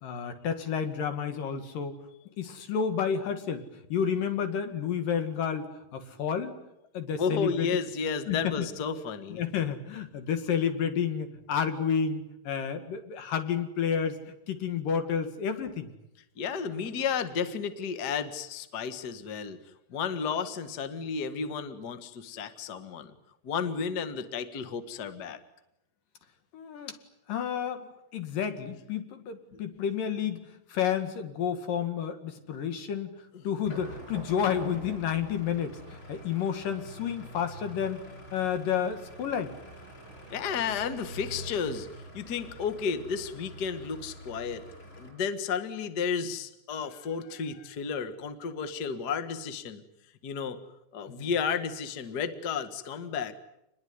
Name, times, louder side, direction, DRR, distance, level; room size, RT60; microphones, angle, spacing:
voice 1, 0.0-2.0 2.4-6.5 6.9-7.7 8.3-8.7 9.3-14.2 14.5-15.9 26.5-26.9 27.3-30.4 30.7-33.1 33.4-39.5 51.1-51.3, left 7 dB, 60° left, 8 dB, 3.5 m, -30 dB
voice 2, 7.2-9.4 16.4-19.6 19.9-23.1 23.4-25.4 29.5-29.6 33.3-33.5 40.3-44.6 45.0-49.8 50.2-50.6 50.9-53.3, left 6 dB, 80° left, 10 dB, 0.9 m, -32 dB
sound 1, 33.7-45.1, right 1 dB, 25° left, 7.8 m, -45 dB
27.5 x 20.5 x 9.6 m, 0.86 s
omnidirectional pair, 4.7 m